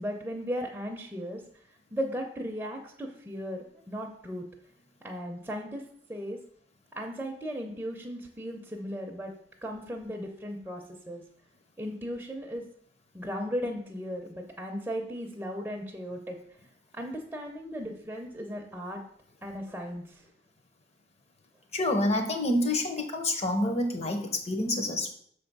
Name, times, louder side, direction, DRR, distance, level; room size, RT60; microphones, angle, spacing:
voice 1, 0.0-1.4 1.9-4.4 5.0-5.8 6.1-6.4 6.9-9.3 9.6-11.2 11.8-12.6 13.1-16.4 16.9-19.0 19.4-20.2, equal, 10° right, 0 dB, 0.6 m, -36 dB
voice 2, 21.7-25.1, left 1 dB, 35° left, 4 dB, 0.9 m, -28 dB
6.5 x 3.4 x 5.3 m, 0.64 s
head